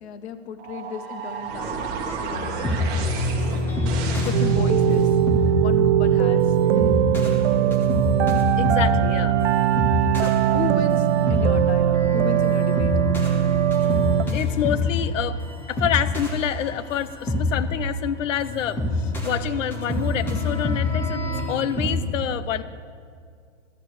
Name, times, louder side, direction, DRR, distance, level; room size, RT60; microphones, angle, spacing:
voice 1, 0.0-3.9 4.2-5.1 5.6-6.5 10.1-12.9, left 7 dB, 60° left, 11 dB, 1.0 m, -34 dB
sound 1, 0.6-5.1, right 4 dB, 25° right, 1.3 m, -32 dB
sound 2, 2.1-22.0, left 2 dB, 5° left, 0.6 m, -27 dB
sound 3, 4.3-14.2, right 10 dB, 60° right, 0.4 m, -20 dB
voice 2, 8.6-9.4 14.3-15.4 15.7-21.2 21.5-22.6, left 10 dB, 85° left, 15 dB, 0.7 m, -27 dB
12.5 x 6.3 x 8.2 m, 2.2 s
hypercardioid pair, 160°, 37 cm